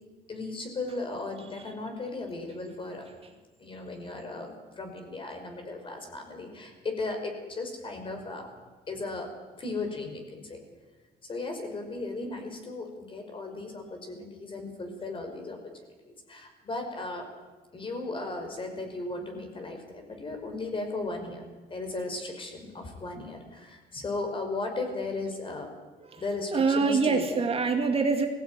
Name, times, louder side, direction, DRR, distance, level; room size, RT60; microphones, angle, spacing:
voice 1, 0.3-3.1 3.6-8.5 8.9-9.3 9.6-10.6 11.3-15.6 16.0-17.3 17.7-21.5 21.7-25.7 26.2-27.4, left 3 dB, 30° left, 4 dB, 5.1 m, -36 dB
voice 2, 26.5-28.3, right 4 dB, 35° right, 4 dB, 2.3 m, -24 dB
19.0 x 16.0 x 9.3 m, 1.3 s
cardioid pair, 110°, 17 cm